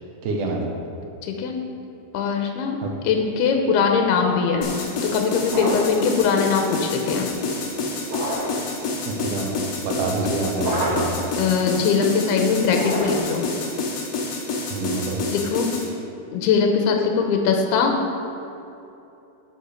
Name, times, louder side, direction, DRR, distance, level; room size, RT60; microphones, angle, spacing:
voice 1, 0.2-0.6 2.8-2.9 9.1-9.5 9.8-11.1 14.7-15.2, right 3 dB, 75° right, 0 dB, 1.9 m, -26 dB
voice 2, 1.2-1.6 2.1-2.8 3.0-7.3 11.4-13.5 15.3-15.7 16.3-18.0, left 5 dB, 85° left, 3 dB, 2.8 m, -21 dB
sound 1, 4.6-15.9, left 3 dB, 65° left, 1.9 m, -28 dB
sound 2, 5.5-6.0 8.0-8.7 10.6-11.2 12.7-13.4, right 1 dB, 55° right, 2.6 m, -27 dB
9.7 x 4.8 x 6.4 m, 2.8 s
omnidirectional pair, 4.6 m